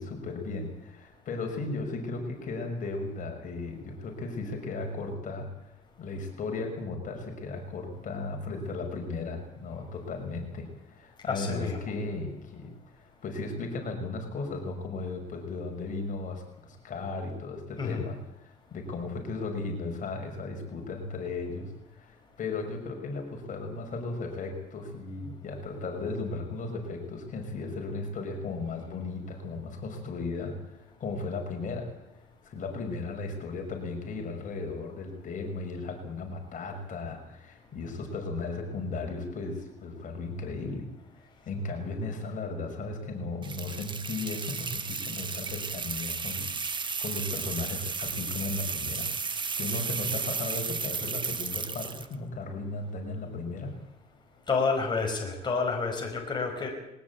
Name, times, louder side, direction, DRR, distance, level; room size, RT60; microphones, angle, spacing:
voice 1, 0.0-5.5 6.0-30.5 31.0-31.9 32.4-40.9 41.2-46.5 47.0-53.7, left 3 dB, 50° left, 3 dB, 5.9 m, -36 dB
voice 2, 11.3-11.9 17.8-18.0 54.5-56.7, left 4 dB, 25° left, 1 dB, 5.4 m, -29 dB
sound 1, 43.4-52.1, right 5 dB, 30° right, 1.5 m, -34 dB
21.5 x 19.0 x 8.6 m, 0.89 s
cardioid pair, 110°, 17 cm